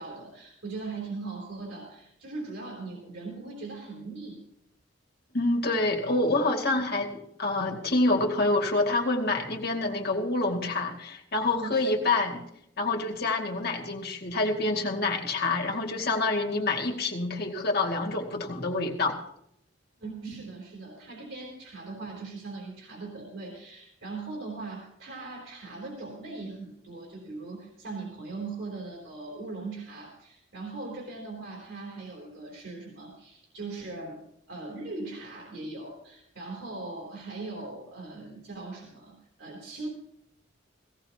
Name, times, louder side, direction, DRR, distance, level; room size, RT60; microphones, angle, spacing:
voice 1, 0.0-4.5 6.8-6.9 11.5-12.2 16.6-16.7 20.0-34.2 34.5-39.9, right 3 dB, 80° right, -2 dB, 3.6 m, -40 dB
voice 2, 5.3-7.1 7.4-12.4 12.8-19.2, left 2 dB, 55° left, 2 dB, 2.3 m, -27 dB
17.5 x 17.0 x 2.9 m, 0.75 s
head